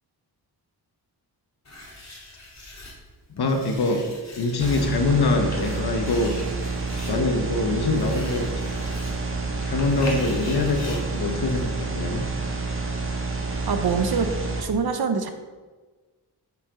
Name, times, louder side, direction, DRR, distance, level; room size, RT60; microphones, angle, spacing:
Writing, 1.7-11.8, left 1 dB, 40° left, 2.4 m, -42 dB
voice 1, 3.3-4.0 4.4-6.4 7.1-8.5 9.6-12.2, left 3 dB, 70° left, 4 dB, 1.3 m, -24 dB
sound 1, 4.6-14.6, right 3 dB, 30° right, 1.5 m, -29 dB
voice 2, 13.7-14.3 14.6-15.3, right 5 dB, 65° right, 7 dB, 1.0 m, -24 dB
7.0 x 7.0 x 5.1 m, 1.3 s
wide cardioid pair, 85°, 40 cm